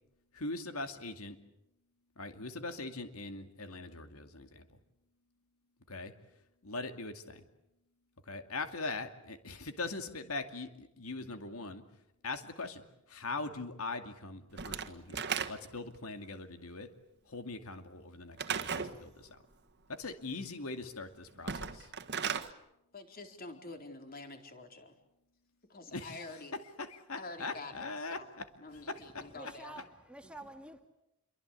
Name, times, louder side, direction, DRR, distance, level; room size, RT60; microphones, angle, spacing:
voice 1, 0.3-1.4 2.2-4.8 5.9-6.1 6.6-7.4 8.2-11.8 12.2-16.9 17.3-19.4 19.9-21.9 25.9-28.5 28.7-29.3, left 3 dB, 85° left, 8 dB, 2.4 m, -41 dB
Slam / Wood, 14.6-15.9 18.4-19.0 21.3-22.5, right 6 dB, 50° right, 1.6 m, -36 dB
voice 2, 22.9-24.9 25.7-26.5 27.2-28.3 28.6-29.9 30.2-30.3, left 2 dB, 45° left, 5 dB, 4.1 m, -47 dB
voice 3, 29.3-30.8, right 2 dB, 5° right, 5 dB, 2.2 m, -49 dB
28.5 x 24.0 x 8.4 m, 0.86 s
head